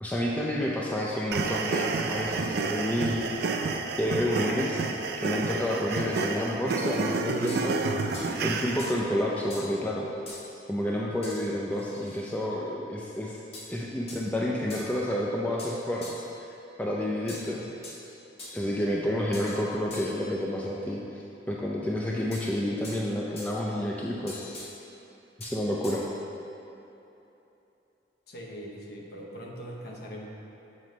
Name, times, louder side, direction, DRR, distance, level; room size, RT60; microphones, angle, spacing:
voice 1, 0.0-3.3 4.0-4.8 5.2-10.1 10.7-13.4 13.7-16.2 16.8-17.7 18.5-21.2 21.5-24.6 25.4-26.0, left 1 dB, 10° left, -4 dB, 0.4 m, -30 dB
sound 1, 1.3-8.9, right 4 dB, 60° right, 0.4 m, -30 dB
sound 2, 7.5-7.7 8.1-8.3 8.8-9.1 9.5-9.8 10.3-10.5 11.2-11.4 11.7-12.3 13.5-13.8 14.1-14.3 14.7-14.9 15.6-16.3 17.3-18.0 18.4-18.7 19.3-19.6 19.9-20.2 22.3-23.0 23.4-23.7 24.3-24.7 25.4-26.0, left 2 dB, 35° left, 1.0 m, -43 dB
voice 2, 28.3-30.3, equal, 60° left, -1 dB, 0.9 m, -41 dB
7.5 x 3.1 x 5.1 m, 2.9 s
head